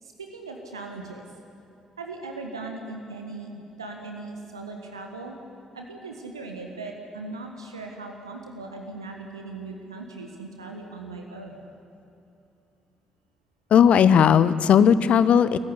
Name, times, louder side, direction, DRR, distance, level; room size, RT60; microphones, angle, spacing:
voice 1, 0.0-1.3 2.0-3.5 3.8-5.4 5.7-11.6, right 3 dB, 85° right, 2 dB, 1.5 m, -38 dB
voice 2, 13.7-15.6, left 8 dB, 55° left, 15 dB, 0.8 m, -17 dB
26.0 x 14.5 x 9.9 m, 2.8 s
figure-of-eight pair, 40°, 2 cm